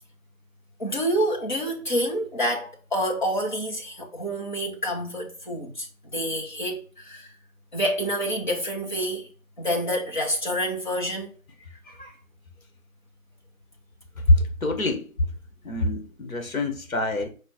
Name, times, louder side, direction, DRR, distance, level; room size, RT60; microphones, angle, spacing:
voice 1, 0.8-7.3 7.7-9.3 9.6-11.3 11.8-12.1, equal, 35° left, 1.2 m, -28 dB
voice 2, 14.3-15.1 15.6-17.3, left 1 dB, 80° left, 1.3 m, -24 dB
5.0 x 2.8 x 3.7 m
figure-of-eight pair, 170°, 41 cm